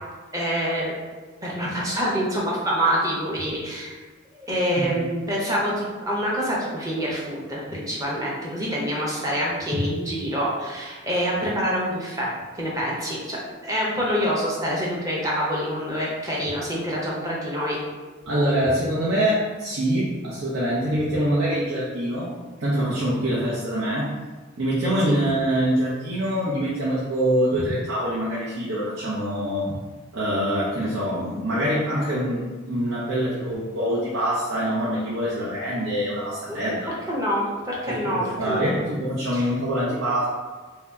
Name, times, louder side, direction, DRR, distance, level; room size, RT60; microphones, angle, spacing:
voice 1, 0.3-0.9 1.4-4.0 4.3-12.3 12.6-17.8 25.1-25.2 27.5-27.8 29.7-29.8 36.5-36.6 37.1-38.7 39.3-39.5, equal, 15° right, -4 dB, 0.7 m, -26 dB
voice 2, 18.3-22.3 22.6-24.1 24.6-29.7 30.1-36.9 37.9-40.2, equal, 75° right, -8 dB, 0.7 m, -24 dB
3.1 x 2.7 x 3.4 m, 1.4 s
head